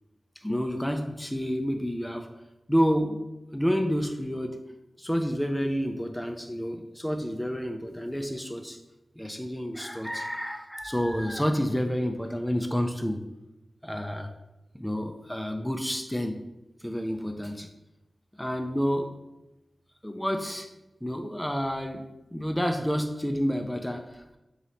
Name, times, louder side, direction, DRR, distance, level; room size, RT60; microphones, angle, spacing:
voice 1, 0.4-2.3 2.7-3.2 3.5-4.6 5.0-8.8 9.2-13.2 13.8-14.3 14.7-16.4 16.8-17.7 18.4-19.1 20.0-20.7 21.0-22.0 22.3-24.4, equal, 5° left, 5 dB, 0.4 m, -29 dB
3.1 x 2.8 x 4.0 m, 0.96 s
cardioid pair, 45°, 0 cm